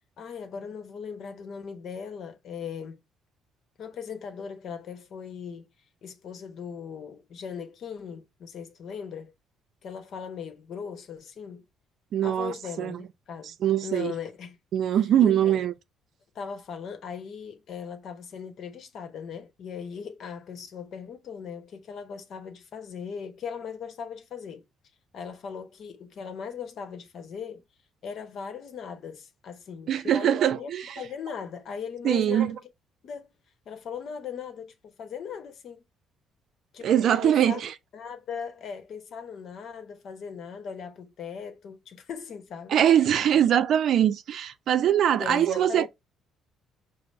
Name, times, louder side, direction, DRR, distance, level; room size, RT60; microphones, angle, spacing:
voice 1, 0.2-3.0 3.8-5.7 6.0-9.3 9.8-11.6 12.2-13.5 13.8-14.6 15.2-15.6 16.3-24.6 25.1-27.6 28.0-30.7 31.0-32.6 33.0-33.3 33.7-35.8 36.7-37.6 37.9-43.4 45.2-45.9, left 6 dB, 60° left, 0.9 m, -39 dB
voice 2, 12.1-13.0 13.6-14.1 14.7-15.7 29.9-30.9 32.0-32.6 36.8-37.7 42.7-45.9, right 10 dB, 65° right, 0.4 m, -22 dB
5.1 x 2.1 x 3.1 m
supercardioid pair, 75°, 0 cm